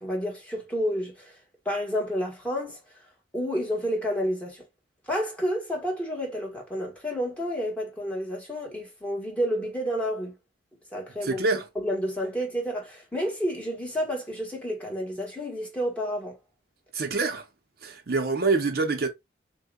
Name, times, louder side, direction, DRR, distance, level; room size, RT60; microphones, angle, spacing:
voice 1, 0.0-1.3 1.6-2.8 3.3-4.6 5.1-10.3 10.9-11.4 11.7-16.4, equal, 5° left, 1.2 m, -30 dB
voice 2, 11.2-11.7 16.9-17.4 17.8-19.1, right 3 dB, 55° right, 0.7 m, -26 dB
6.4 x 2.2 x 2.3 m
head